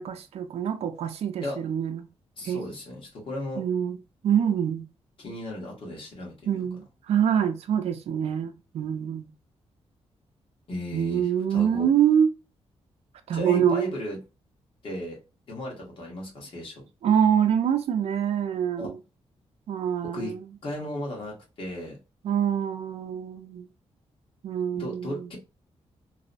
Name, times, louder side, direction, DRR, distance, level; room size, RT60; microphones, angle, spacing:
voice 1, 0.0-2.1 2.4-2.6 3.6-4.0 4.2-4.8 6.5-9.3 10.9-12.3 13.3-13.9 17.0-19.0 19.7-20.4 22.2-23.7 24.4-25.3, right 8 dB, 70° right, 0.5 m, -25 dB
voice 2, 2.4-3.6 5.2-6.7 10.7-11.9 13.3-14.2 14.8-15.2 15.5-16.8 18.8-18.9 20.1-20.3 20.6-22.0 24.7-25.4, left 1 dB, 55° left, 1.3 m, -35 dB
3.0 x 2.0 x 2.5 m
wide cardioid pair, 175°, 11 cm